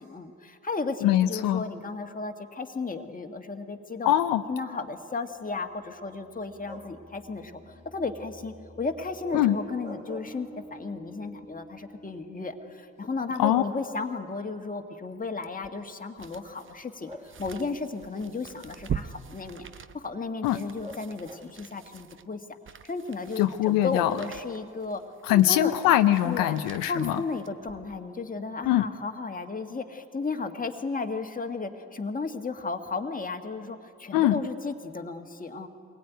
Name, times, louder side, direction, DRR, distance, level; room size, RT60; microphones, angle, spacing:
voice 1, 0.0-4.1 4.5-17.1 17.4-19.7 19.9-22.4 22.8-25.0 25.3-25.8 26.2-26.6 26.9-35.7, left 4 dB, 25° left, 5 dB, 1.7 m, -34 dB
voice 2, 1.0-1.6 4.1-4.4 9.3-9.6 13.4-13.6 20.4-20.6 23.4-24.1 25.2-27.2 28.7-28.9 34.1-34.4, left 13 dB, 85° left, 9 dB, 0.7 m, -22 dB
sound 1, 6.1-12.9, right 1 dB, ahead, 2.5 m, -49 dB
sound 2, 6.6-7.1 9.6-11.0 11.4-11.5 13.0-13.1 13.5-14.7 15.7-15.8 17.1-17.8 20.8-21.7, left 2 dB, 20° right, 3.2 m, -46 dB
sound 3, 15.4-28.1 28.6-28.7, right 8 dB, 40° right, 0.8 m, -43 dB
23.5 x 17.0 x 9.3 m, 2.5 s
supercardioid pair, 60°, 33 cm